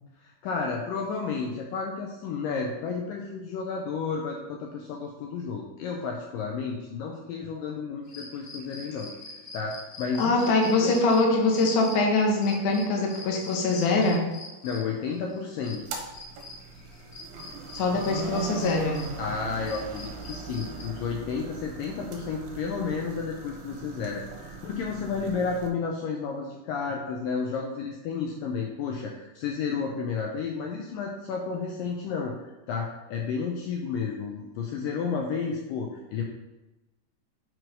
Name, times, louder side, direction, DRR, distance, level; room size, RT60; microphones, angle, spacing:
voice 1, 0.2-9.1 9.5-11.0 14.6-15.8 19.2-36.2, left 5 dB, 80° left, 1 dB, 2.0 m, -32 dB
sound 1, 8.0-20.9, left 2 dB, 35° left, 1.9 m, -45 dB
voice 2, 10.2-14.2 17.7-19.0, left 3 dB, 65° left, 0 dB, 2.2 m, -23 dB
sound 2, 15.7-25.7, right 5 dB, 75° right, 2.5 m, -39 dB
6.1 x 4.7 x 5.1 m, 1.0 s
omnidirectional pair, 4.5 m